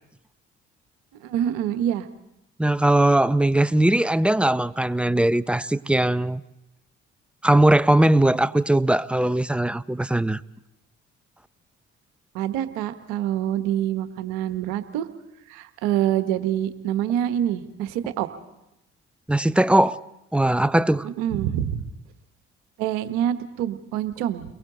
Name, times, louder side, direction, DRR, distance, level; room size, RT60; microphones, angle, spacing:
voice 1, 1.2-2.1 12.3-15.1 15.5-18.3 21.0-21.8 22.8-24.4, right 11 dB, 75° right, 10 dB, 1.3 m, -26 dB
voice 2, 2.6-6.4 7.4-10.4 19.3-20.0 20.3-21.1, right 1 dB, 5° right, 16 dB, 0.6 m, -20 dB
30.0 x 22.5 x 4.0 m, 0.87 s
hypercardioid pair, 50°, 32 cm